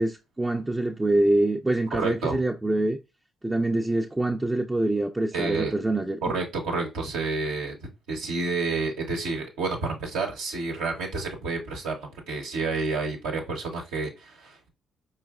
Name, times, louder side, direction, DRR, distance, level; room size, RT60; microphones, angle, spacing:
voice 1, 0.0-3.0 3.4-6.3, right 2 dB, 15° right, 0.4 m, -25 dB
voice 2, 2.0-2.4 5.3-5.7 6.2-7.8 8.1-14.7, right 3 dB, 80° right, 0.7 m, -29 dB
4.6 x 3.1 x 2.3 m
hypercardioid pair, 50°, 0 cm